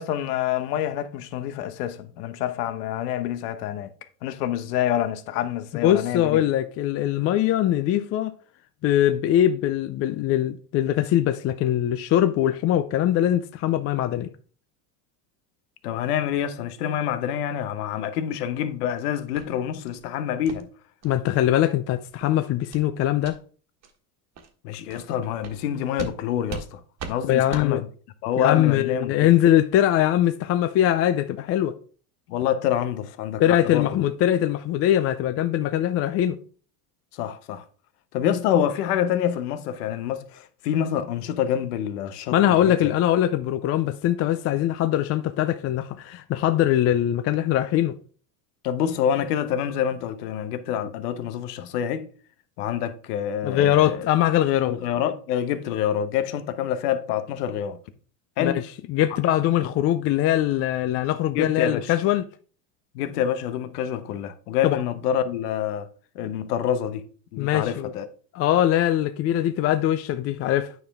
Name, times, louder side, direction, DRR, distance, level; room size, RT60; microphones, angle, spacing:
voice 1, 0.0-3.9 4.2-6.4 15.8-20.7 24.6-26.8 27.1-27.9 28.2-29.3 32.3-34.0 37.1-37.6 38.1-42.9 48.6-52.1 52.6-54.0 54.7-57.8 58.4-58.6 61.3-61.9 62.9-65.9 66.1-67.0 67.3-68.1, left 9 dB, 85° left, 1.1 m, -27 dB
voice 2, 5.7-8.3 8.8-14.3 21.0-23.4 27.3-27.8 28.4-31.8 33.4-36.4 42.3-48.0 53.4-54.8 58.4-58.6 58.9-62.3 64.6-64.8 67.4-67.9 68.3-70.7, left 12 dB, 35° left, 0.4 m, -22 dB
sound 1, 19.3-19.5 19.9-20.0 20.4-20.6 21.0-21.1 21.6-21.7 22.1-22.3 22.7-22.9 23.2-23.3 23.8-23.9 24.3-24.5 24.9-25.0 25.4-25.6 26.0-26.1 26.5-26.7 27.0-27.1 27.5-27.7, right 5 dB, 35° right, 1.5 m, -37 dB
9.4 x 5.7 x 3.5 m
supercardioid pair, 125°, 46 cm